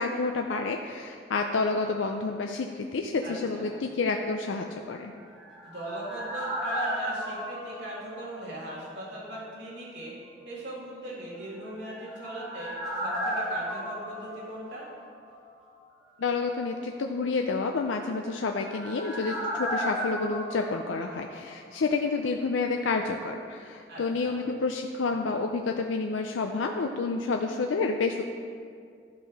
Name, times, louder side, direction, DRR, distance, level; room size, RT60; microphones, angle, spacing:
voice 1, 0.0-5.1 16.2-28.2, left 4 dB, 90° left, 4 dB, 0.5 m, -29 dB
voice 2, 3.2-3.8 5.6-10.1 10.5-14.9 23.9-24.4, right 1 dB, 70° right, -7 dB, 2.5 m, -39 dB
sound 1, 5.0-8.9 9.1-9.2 11.6-15.4 15.6-15.7 18.0-21.8 22.1-22.2, equal, ahead, 2.0 m, -35 dB
12.0 x 5.5 x 4.8 m, 2.3 s
head